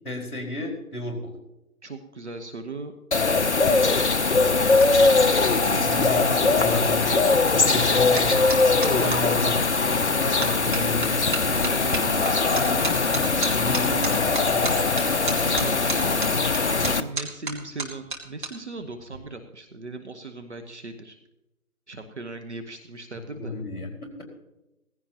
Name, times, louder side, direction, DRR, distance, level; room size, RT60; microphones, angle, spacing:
voice 1, 0.0-1.4 5.6-6.2 6.5-9.5 9.8-11.2 12.5-15.0 23.4-24.2, left 1 dB, 5° left, -11 dB, 3.7 m, -32 dB
voice 2, 1.8-2.9 3.3-4.0 5.7-6.8 8.9-9.4 11.4-13.0 15.4-16.5 16.8-21.2 21.9-23.6, right 3 dB, 50° right, 5 dB, 1.2 m, -37 dB
sound 1, 3.1-17.0, left 3 dB, 50° left, 0.7 m, -21 dB
sound 2, 4.4-9.2 9.8-10.1 10.4-18.5 18.8-19.2, right 3 dB, 35° right, 2.2 m, -34 dB
18.5 x 15.5 x 2.9 m, 0.94 s
figure-of-eight pair, 160°, 45 cm